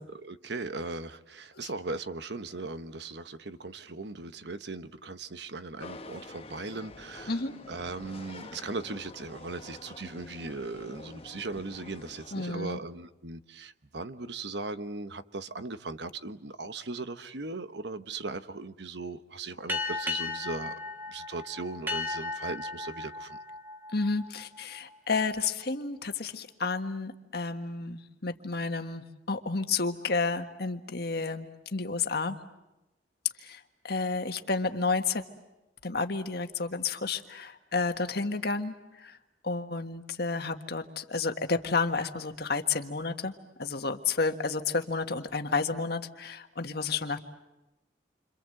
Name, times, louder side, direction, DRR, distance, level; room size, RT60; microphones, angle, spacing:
voice 1, 0.0-7.4 7.7-20.7 21.1-23.4, right 3 dB, 65° right, 1.2 m, -38 dB
sound 1, 5.8-12.5, left 2 dB, 30° left, 1.2 m, -47 dB
voice 2, 12.3-12.8 23.9-32.4 33.4-35.2 35.8-39.2 39.4-43.3 43.6-47.2, left 4 dB, 60° left, 1.6 m, -31 dB
sound 2, 19.7-24.8, left 3 dB, 10° right, 2.1 m, -36 dB
29.0 x 26.0 x 7.9 m
head